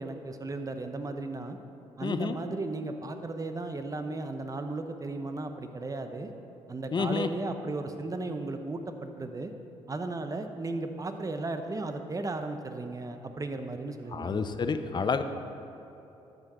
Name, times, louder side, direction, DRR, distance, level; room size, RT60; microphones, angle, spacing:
voice 1, 0.0-1.6 2.0-6.3 6.7-9.5 9.9-14.5, right 2 dB, 30° right, 7 dB, 0.9 m, -35 dB
voice 2, 2.0-2.4 6.9-7.3 14.1-15.2, left 5 dB, 35° left, 9 dB, 0.6 m, -29 dB
12.0 x 6.6 x 4.3 m, 3.0 s
supercardioid pair, 60°, 12 cm